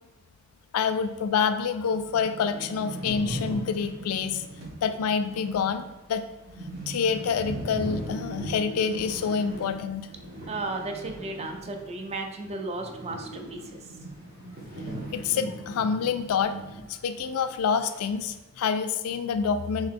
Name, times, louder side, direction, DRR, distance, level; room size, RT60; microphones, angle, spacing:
voice 1, 0.7-4.4 4.8-6.2 6.9-10.1 15.1-16.6 16.9-19.9, left 6 dB, 85° left, 10 dB, 0.3 m, -27 dB
sound 1, 1.2-1.3 1.6-1.7 1.9-12.1 12.4-16.9 17.2-17.3 17.9-18.3, right 1 dB, 45° right, 1.0 m, -39 dB
voice 2, 10.5-13.8, right 2 dB, 30° right, 4 dB, 0.5 m, -34 dB
3.9 x 3.0 x 3.6 m, 1.1 s
head